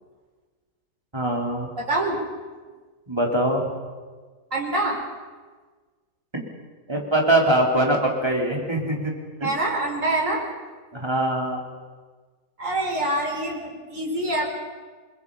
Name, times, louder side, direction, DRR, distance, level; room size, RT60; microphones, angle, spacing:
voice 1, 1.1-1.7 3.1-3.7 6.3-6.4 6.9-9.1 9.4-9.5 10.9-11.6, right 1 dB, 15° right, 0 dB, 3.8 m, -22 dB
voice 2, 1.8-2.2 4.5-5.0 9.4-10.5 12.6-14.5, right 2 dB, 55° right, -1 dB, 5.1 m, -25 dB
28.5 x 21.5 x 5.6 m, 1.4 s
omnidirectional pair, 1.6 m